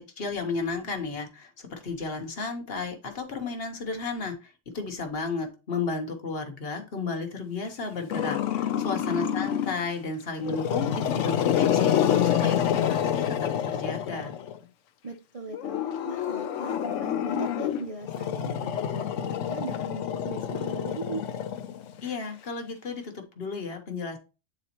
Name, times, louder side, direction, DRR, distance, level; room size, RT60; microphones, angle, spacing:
voice 1, 0.2-11.9 12.2-14.3 22.0-24.2, left 4 dB, 55° left, 5 dB, 1.3 m, -33 dB
Growling, 8.1-9.9 10.4-14.6 15.5-22.1, left 9 dB, 85° left, 1.0 m, -27 dB
voice 2, 9.1-9.5 15.0-21.2, right 3 dB, 35° right, 3 dB, 0.6 m, -39 dB
8.6 x 4.1 x 2.9 m, 0.32 s
omnidirectional pair, 1.2 m